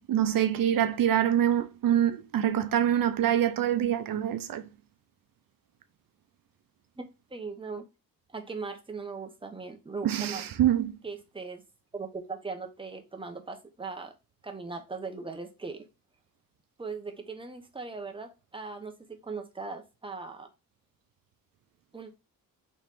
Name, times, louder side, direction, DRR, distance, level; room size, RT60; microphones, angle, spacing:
voice 1, 0.1-4.7 10.0-11.0, right 10 dB, 70° right, 0.6 m, -25 dB
voice 2, 7.0-7.9 8.3-10.4 11.0-11.6 11.9-14.1 14.4-15.9 16.8-20.5 21.9-22.1, right 4 dB, 15° right, 0.8 m, -39 dB
4.2 x 3.1 x 3.5 m
wide cardioid pair, 145°, 35 cm